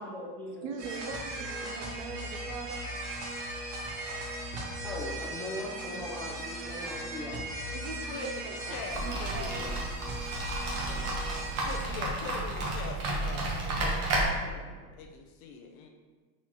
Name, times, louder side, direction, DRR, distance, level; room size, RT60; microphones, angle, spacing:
voice 1, 0.0-0.7 4.8-7.5 10.8-11.5 13.8-13.9 14.4-15.0, left 1 dB, 5° left, -6 dB, 0.5 m, -41 dB
voice 2, 0.6-2.9 7.7-9.5, right 5 dB, 50° right, 4 dB, 0.5 m, -41 dB
sound 1, 0.8-11.8, right 1 dB, 65° right, 1.3 m, -38 dB
voice 3, 8.1-9.7 11.6-13.9 15.0-15.9, left 5 dB, 50° left, 3 dB, 0.5 m, -42 dB
sound 2, 8.9-14.2, right 2 dB, 30° right, 0.9 m, -32 dB
4.0 x 2.8 x 4.5 m, 1.3 s
supercardioid pair, 155°, 49 cm